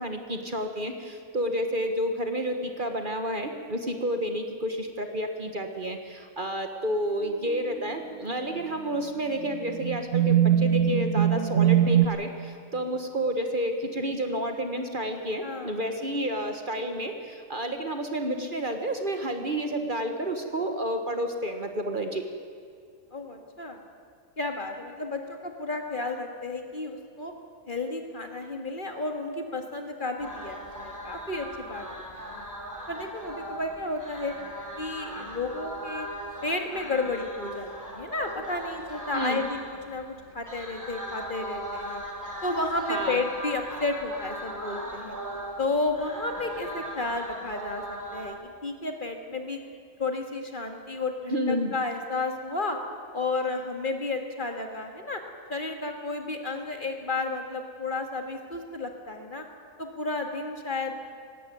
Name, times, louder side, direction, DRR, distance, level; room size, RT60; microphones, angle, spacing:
voice 1, 0.0-22.3 39.1-39.4 42.9-43.2 51.3-51.7, equal, 40° right, 6 dB, 1.4 m, -30 dB
sound 1, 7.5-7.8 8.5-8.6 9.5-12.1, right 9 dB, 60° right, 1.4 m, -22 dB
voice 2, 15.4-15.8 16.1-16.2 23.1-23.8 24.4-27.3 27.7-32.0 32.3-32.4 32.9-34.3 34.8-36.1 36.4-42.0 42.4-45.2 45.6-49.6 50.0-52.8 53.1-55.2 55.5-59.4 59.8-61.0, left 3 dB, 40° left, 4 dB, 1.9 m, -32 dB
sound 2, 30.2-48.3, right 1 dB, 15° right, 2.5 m, -39 dB
18.0 x 16.0 x 9.3 m, 2.2 s
omnidirectional pair, 1.4 m